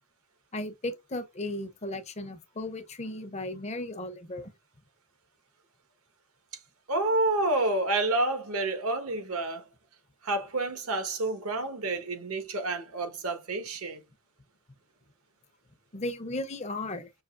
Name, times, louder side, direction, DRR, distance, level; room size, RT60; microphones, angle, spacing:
voice 1, 0.5-4.5 15.9-17.1, left 1 dB, 30° left, 0.6 m, -35 dB
voice 2, 6.9-9.6 10.2-14.0, right 2 dB, 75° right, 1.2 m, -29 dB
5.7 x 2.9 x 2.3 m
head